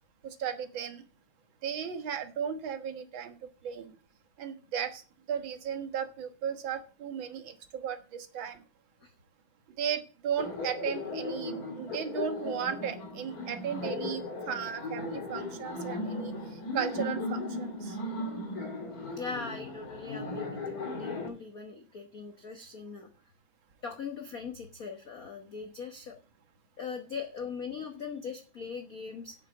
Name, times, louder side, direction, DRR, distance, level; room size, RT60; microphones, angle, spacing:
voice 1, 0.2-1.0 1.6-3.4 3.6-3.9 4.4-5.0 5.3-8.6 9.8-18.0, right 8 dB, 50° right, 8 dB, 1.7 m, -35 dB
Laughter, 10.4-21.3, left 2 dB, 35° left, 2.1 m, -37 dB
voice 2, 19.2-23.1 23.8-26.1 26.8-29.4, left 5 dB, 70° left, 4 dB, 0.8 m, -40 dB
8.4 x 7.6 x 6.8 m, 0.36 s
omnidirectional pair, 3.3 m